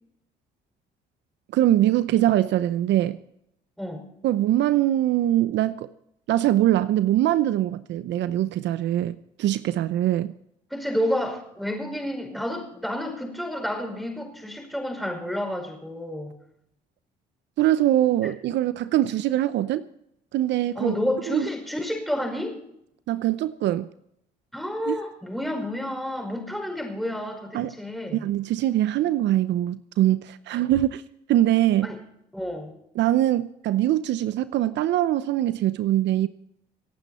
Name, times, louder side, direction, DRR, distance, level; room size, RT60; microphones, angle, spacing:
voice 1, 1.5-3.2 4.2-5.9 6.3-10.3 17.6-19.9 20.3-21.0 21.3-21.5 23.1-23.9 24.9-25.0 27.5-27.7 28.1-31.0 31.3-31.9 33.0-36.3, right 13 dB, 70° right, 14 dB, 0.7 m, -22 dB
voice 2, 10.7-16.3 20.7-22.6 24.5-28.2 31.8-32.0 32.3-32.7, left 1 dB, ahead, 3 dB, 5.2 m, -30 dB
27.0 x 9.1 x 4.3 m, 0.76 s
supercardioid pair, 75°, 19 cm